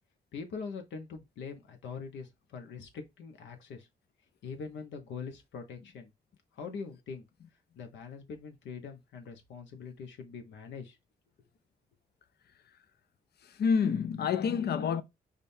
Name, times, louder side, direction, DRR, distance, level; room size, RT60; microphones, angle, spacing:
voice 1, 0.3-3.9 4.4-6.1 6.6-7.2 7.8-11.0, left 5 dB, 85° left, 0.9 m, -43 dB
voice 2, 13.4-15.0, left 6 dB, 60° left, 0.5 m, -28 dB
5.0 x 2.3 x 2.7 m
supercardioid pair, 50°, 19 cm